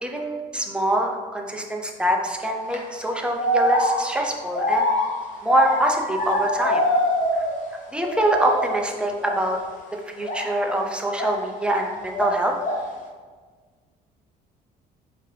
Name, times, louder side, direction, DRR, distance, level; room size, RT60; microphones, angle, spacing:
voice 1, 0.0-4.9 5.4-6.8 7.3-7.4 7.9-9.6 10.2-12.5, right 1 dB, 5° right, 2 dB, 0.5 m, -24 dB
sound 1, 2.4-2.8 3.4-7.7 8.0-8.8 9.2-9.4 10.2-11.9 12.1-12.9, left 1 dB, 50° left, 0.9 m, -25 dB
4.9 x 2.9 x 3.2 m, 1.5 s
cardioid pair, 110°, 17 cm